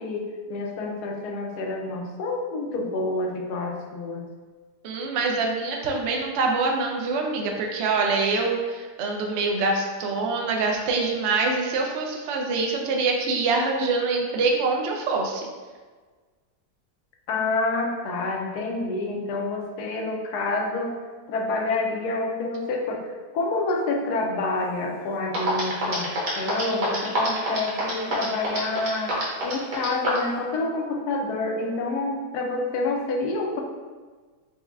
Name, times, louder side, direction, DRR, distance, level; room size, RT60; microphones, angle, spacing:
voice 1, 0.0-4.3 17.3-21.0 21.3-23.1 23.3-26.1 26.4-29.1 29.4-33.6, left 2 dB, 75° left, 1 dB, 1.1 m, -28 dB
voice 2, 4.8-15.5, right 3 dB, 75° right, 1 dB, 0.6 m, -25 dB
sound 1, 25.0-25.1 25.3-30.3, right 1 dB, 55° right, 1.3 m, -26 dB
4.7 x 2.1 x 3.4 m, 1.4 s
omnidirectional pair, 1.8 m